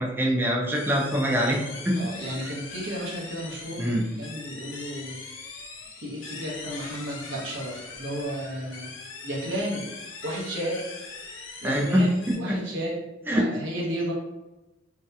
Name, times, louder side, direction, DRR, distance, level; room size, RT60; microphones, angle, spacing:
voice 1, 0.0-2.0 3.8-4.0 11.6-12.6 13.3-13.4, equal, 10° right, -1 dB, 0.3 m, -24 dB
sound 1, 0.7-12.4, left 4 dB, 75° left, 0.4 m, -41 dB
voice 2, 1.9-5.2 6.0-9.9 10.2-10.8 11.6-12.1 12.4-14.1, right 1 dB, 65° right, -4 dB, 0.7 m, -33 dB
2.7 x 2.0 x 2.3 m, 1.0 s
head